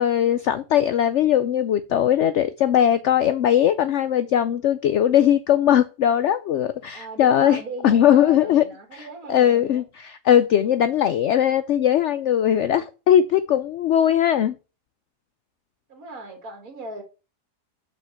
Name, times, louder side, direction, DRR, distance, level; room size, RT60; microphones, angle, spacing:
voice 1, 0.0-8.6 8.9-14.6, left 10 dB, 80° left, 0.6 m, -20 dB
voice 2, 6.9-9.9 15.9-17.0, right 3 dB, 60° right, 2.0 m, -38 dB
6.3 x 4.9 x 5.7 m
omnidirectional pair, 1.7 m